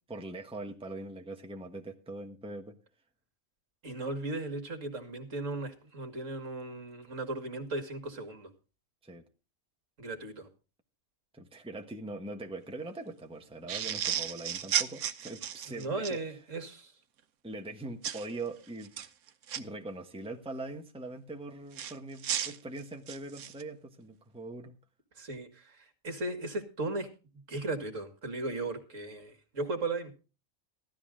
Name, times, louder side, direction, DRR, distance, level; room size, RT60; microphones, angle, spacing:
voice 1, 0.1-2.8 9.0-9.2 11.3-16.4 17.4-18.9 19.5-24.7, right 2 dB, 5° right, 4 dB, 1.3 m, -42 dB
voice 2, 3.8-8.5 10.0-10.5 15.7-16.9 25.2-25.8 26.0-27.1 27.5-30.1, right 2 dB, 60° right, 7 dB, 2.3 m, -36 dB
sound 1, 13.7-16.2 18.0-18.3 18.8-19.6 21.7-23.6, right 10 dB, 85° right, 1.4 m, -33 dB
15.0 x 12.5 x 3.7 m, 0.33 s
omnidirectional pair, 1.5 m